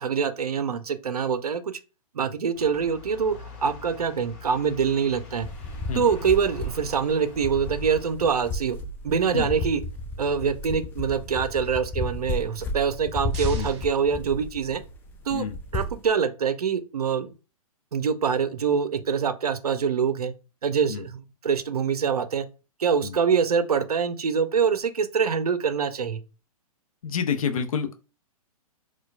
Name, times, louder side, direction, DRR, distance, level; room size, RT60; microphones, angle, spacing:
voice 1, 0.0-1.8 2.1-5.5 6.0-8.8 9.0-9.8 10.2-14.8 15.3-15.5 15.7-17.3 17.9-20.3 20.6-22.5 22.8-26.2, right 6 dB, 80° right, 0.5 m, -25 dB
sound 1, 2.5-8.1, left 4 dB, 35° left, 1.2 m, -43 dB
sound 2, 5.4-16.1, left 2 dB, 10° left, 0.3 m, -33 dB
sound 3, 12.8-15.0, right 6 dB, 45° right, 0.8 m, -46 dB
voice 2, 27.0-27.9, left 6 dB, 65° left, 0.6 m, -28 dB
4.5 x 2.2 x 2.4 m
figure-of-eight pair, 120°, 19 cm